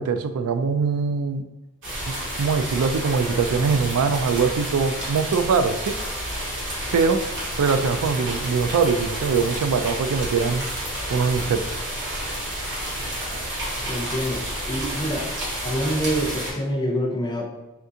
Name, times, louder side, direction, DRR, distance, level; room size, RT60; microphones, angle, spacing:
voice 1, 0.0-1.4 2.1-6.0 6.9-10.6 11.1-11.9, right 5 dB, 80° right, 9 dB, 0.3 m, -22 dB
sound 1, 1.8-16.5, right 1 dB, 55° right, 1.2 m, -30 dB
voice 2, 13.8-14.4 14.7-15.3 15.6-17.5, equal, 20° left, 2 dB, 0.4 m, -26 dB
3.6 x 3.5 x 2.7 m, 1.0 s
head